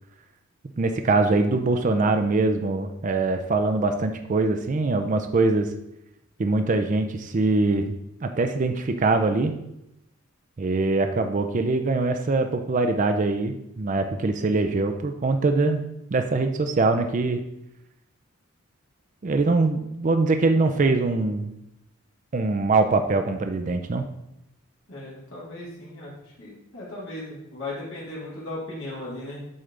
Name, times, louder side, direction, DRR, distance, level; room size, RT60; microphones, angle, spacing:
voice 1, 0.8-5.7 6.4-7.9 8.2-9.5 10.6-15.8 16.1-17.4 19.2-21.5 22.3-24.1, right 3 dB, 35° right, 6 dB, 0.4 m, -23 dB
voice 2, 24.9-26.1 26.4-29.5, left 2 dB, 70° left, -8 dB, 2.2 m, -36 dB
7.9 x 3.3 x 3.8 m, 0.84 s
head